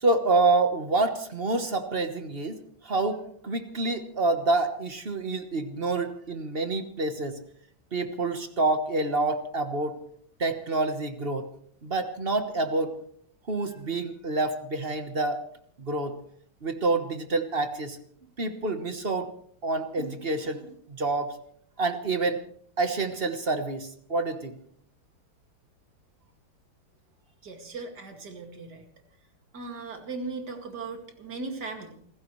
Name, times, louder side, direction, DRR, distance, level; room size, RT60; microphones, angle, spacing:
voice 1, 0.0-7.4 7.9-10.0 10.4-11.4 11.8-12.9 13.5-15.4 15.8-16.1 16.6-18.0 18.4-19.3 19.6-21.3 21.8-22.4 22.8-24.5, right 3 dB, 35° right, 8 dB, 1.1 m, -27 dB
voice 2, 27.4-28.8 29.5-32.0, right 3 dB, 50° right, 4 dB, 2.8 m, -38 dB
28.5 x 15.5 x 3.2 m, 0.62 s
omnidirectional pair, 2.3 m